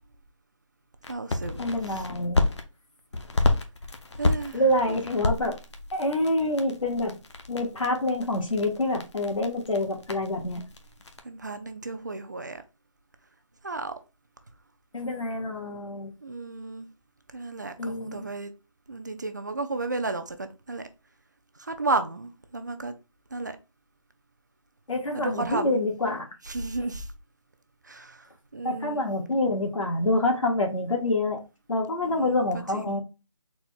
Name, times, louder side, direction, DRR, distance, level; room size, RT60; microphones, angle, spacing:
sound 1, 1.0-2.6 3.1-11.2, left 2 dB, 60° left, 0.9 m, -30 dB
voice 1, 1.1-1.6 4.2-4.6 4.9-5.0 11.2-12.6 13.6-13.9 16.2-16.9 17.3-18.5 18.9-20.8 21.7-22.9 23.3-23.5 25.1-25.7 26.5-27.1 27.9-28.2 28.5-29.1 32.0-32.4 32.7-33.0, right 3 dB, 35° right, 0.4 m, -33 dB
voice 2, 1.6-2.4 4.5-5.5 5.9-7.1 7.5-10.6 14.9-16.1 17.8-18.3 24.9-26.3 28.6-31.4 31.7-33.0, left 1 dB, 85° left, 1.8 m, -26 dB
4.2 x 2.3 x 4.3 m
figure-of-eight pair, 170°, 17 cm